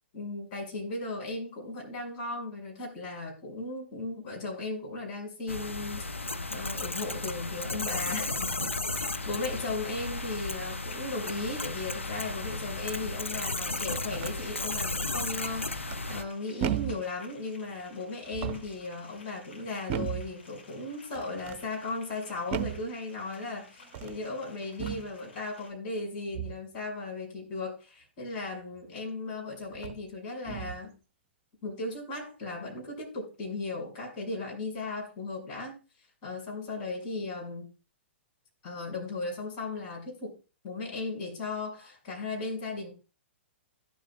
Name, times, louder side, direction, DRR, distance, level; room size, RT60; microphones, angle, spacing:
voice 1, 0.1-6.0 6.5-30.9 31.6-35.8 36.2-37.7 38.6-40.3 40.6-42.9, left 3 dB, 45° left, -1 dB, 6.0 m, -36 dB
sound 1, 5.5-16.2, left 2 dB, 90° left, 0.7 m, -34 dB
sound 2, 9.3-25.7, left 3 dB, 70° left, 5.9 m, -55 dB
sound 3, 13.9-14.4 15.9-16.3 16.6-17.1 18.2-18.8 19.9-20.3 21.1-21.6 22.5-22.9 23.8-24.2 24.8-25.1 26.3-26.7 28.8-28.9 29.7-30.1 30.4-30.9, right 10 dB, 35° right, 0.9 m, -35 dB
16.5 x 7.3 x 2.4 m, 0.32 s
figure-of-eight pair, 115°, 7 cm